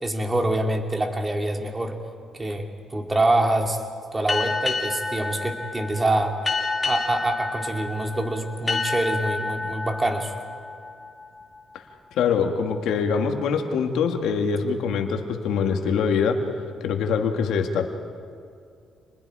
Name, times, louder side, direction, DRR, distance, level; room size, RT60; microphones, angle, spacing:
voice 1, 0.0-2.0 2.3-3.8 4.1-6.3 6.8-10.3, right 1 dB, 20° right, 3 dB, 2.6 m, -25 dB
sound 1, 4.3-11.6, left 3 dB, 25° left, 2.5 m, -29 dB
voice 2, 12.2-16.4 16.8-17.9, left 6 dB, 85° left, 4 dB, 2.0 m, -23 dB
28.5 x 20.5 x 4.9 m, 2.3 s
cardioid pair, 90°, 0 cm